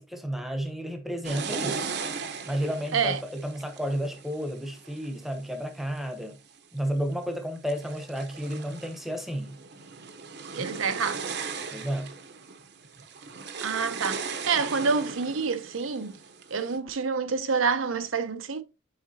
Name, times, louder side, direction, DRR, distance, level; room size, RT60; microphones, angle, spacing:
voice 1, 0.0-1.9 2.4-6.4 6.7-9.6 11.7-12.1, equal, ahead, 0.9 m, -32 dB
sound 1, 1.2-6.0 6.6-7.1 7.6-16.8, right 5 dB, 55° right, 0.8 m, -38 dB
voice 2, 10.6-11.4 13.6-16.1 16.5-18.6, right 5 dB, 90° right, 0.7 m, -27 dB
8.7 x 4.7 x 2.7 m
head